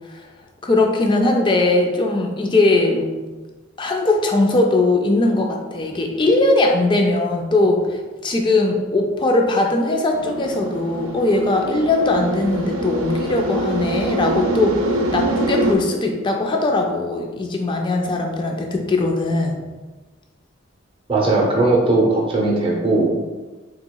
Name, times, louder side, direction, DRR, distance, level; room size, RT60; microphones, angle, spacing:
voice 1, 0.6-3.1 3.8-19.6, left 2 dB, 25° left, 2 dB, 0.3 m, -20 dB
sound 1, 10.1-15.8, right 1 dB, 90° right, 0.4 m, -24 dB
voice 2, 21.1-23.1, right 2 dB, 25° right, -3 dB, 0.7 m, -18 dB
3.8 x 2.9 x 2.2 m, 1.3 s
head